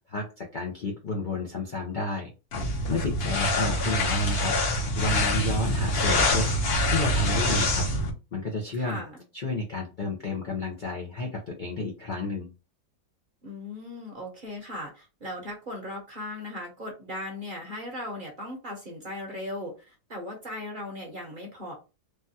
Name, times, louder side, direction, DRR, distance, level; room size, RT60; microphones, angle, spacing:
voice 1, 0.1-2.3 2.7-6.5 6.9-7.9 8.3-9.0 9.3-12.5, left 3 dB, 85° left, 0 dB, 0.4 m, -31 dB
sound 1, 2.5-8.1, left 1 dB, 50° left, 0.8 m, -25 dB
voice 2, 8.7-9.2 13.4-21.7, left 1 dB, 45° right, 0 dB, 0.7 m, -38 dB
3.3 x 2.2 x 2.7 m, 0.30 s
omnidirectional pair, 1.7 m